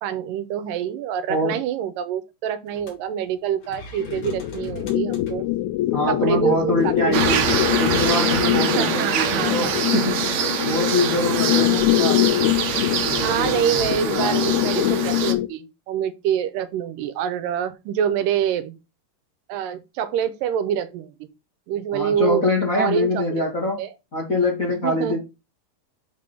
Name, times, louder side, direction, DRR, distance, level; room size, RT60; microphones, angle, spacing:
voice 1, 0.0-5.5 6.1-6.9 7.7-7.9 8.6-10.0 13.2-18.8 19.5-21.1 21.7-22.4 22.7-23.4 23.8-23.9 24.8-25.2, right 9 dB, 85° right, 2.4 m, -26 dB
voice 2, 1.3-1.6 5.9-7.5 7.8-12.3 13.0-14.5 21.9-23.8 24.1-25.2, left 1 dB, 40° left, 1.2 m, -24 dB
sound 1, 2.7-2.9 3.3-3.4 3.6-5.5 5.9-6.0 6.8-9.8 10.3-10.8 12.1-14.6, left 4 dB, 65° left, 3.3 m, -36 dB
sound 2, 4.0-15.5, left 16 dB, 85° left, 1.7 m, -24 dB
sound 3, 7.1-15.3, right 8 dB, 65° right, 2.0 m, -25 dB
7.4 x 3.5 x 5.4 m
omnidirectional pair, 3.9 m